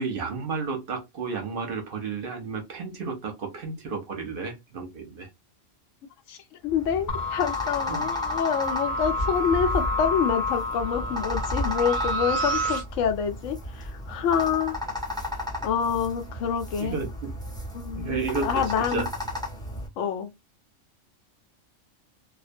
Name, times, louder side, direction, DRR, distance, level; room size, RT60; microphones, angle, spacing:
voice 1, 0.0-5.3 7.9-8.2 16.8-17.3 17.9-19.1, right 4 dB, 55° right, 0.7 m, -32 dB
voice 2, 6.6-14.8 15.6-17.0 17.7-19.1 20.0-20.3, left 7 dB, 85° left, 0.9 m, -27 dB
sound 1, 6.7-19.9, left 1 dB, 5° left, 0.5 m, -34 dB
sound 2, 7.1-12.8, left 1 dB, 40° left, 0.8 m, -29 dB
2.4 x 2.1 x 2.5 m
omnidirectional pair, 1.3 m